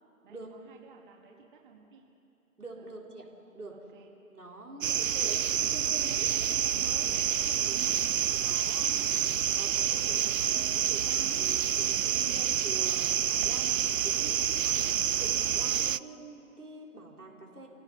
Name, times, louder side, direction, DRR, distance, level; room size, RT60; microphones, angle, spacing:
voice 1, 0.2-2.1 2.8-3.0 3.7-4.1 7.7-8.3 12.2-12.4 14.7-14.9, right 6 dB, 35° right, 1 dB, 1.9 m, -52 dB
voice 2, 2.6-3.3 3.5-3.8 4.2-8.0 8.4-9.1 9.5-11.5 11.7-14.9 15.2-17.7, right 2 dB, 85° right, -1 dB, 4.7 m, -45 dB
sound 1, 4.8-16.0, right 10 dB, 60° right, 0.5 m, -28 dB
sound 2, 6.3-6.6 7.1-7.7 8.3-8.7 9.1-9.8 10.4-10.7 11.2-11.7 12.5-14.6, right 1 dB, ahead, 0.7 m, -55 dB
28.5 x 17.0 x 5.8 m, 2.7 s
figure-of-eight pair, 145°, 44 cm